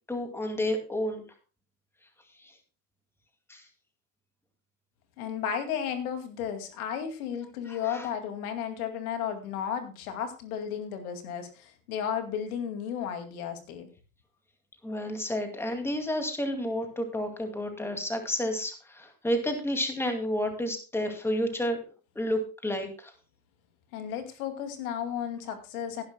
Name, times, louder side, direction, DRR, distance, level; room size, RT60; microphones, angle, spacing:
voice 1, 0.1-1.2 3.5-3.6 7.7-8.1 14.8-21.8 22.2-23.1, equal, 5° left, 5 dB, 2.3 m, -30 dB
voice 2, 5.2-13.9 23.9-26.0, left 8 dB, 70° left, 7 dB, 2.4 m, -34 dB
17.5 x 10.5 x 2.2 m, 0.33 s
hypercardioid pair, 95°, 46 cm